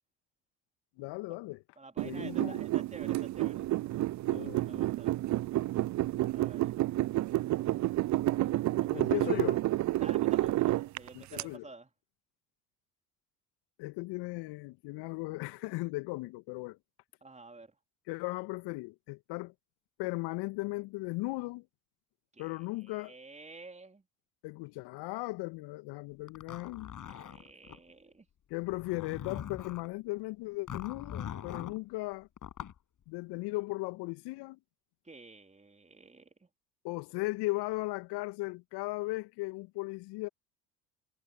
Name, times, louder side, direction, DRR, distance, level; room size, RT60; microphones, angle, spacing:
voice 1, 1.0-1.6 2.0-2.6 4.3-4.8 8.9-9.6 11.1-11.7 13.8-16.8 18.1-19.5 20.0-21.7 22.4-23.2 24.4-26.9 28.5-32.3 33.1-34.6 36.8-40.3, left 22 dB, 60° left, 2.2 m, -37 dB
voice 2, 1.8-3.7 4.3-5.2 6.3-6.8 8.8-9.6 10.0-11.9 17.2-17.8 22.3-22.5 22.9-24.0 27.0-28.3 35.0-36.5, right 3 dB, 15° right, 4.1 m, -51 dB
sound 1, 2.0-11.4, right 16 dB, 40° right, 0.7 m, -30 dB
Zipper (clothing), 26.3-27.8 28.6-29.9 30.7-31.8 32.4-32.8, left 9 dB, 45° left, 7.7 m, -42 dB
figure-of-eight pair, 60°, 44 cm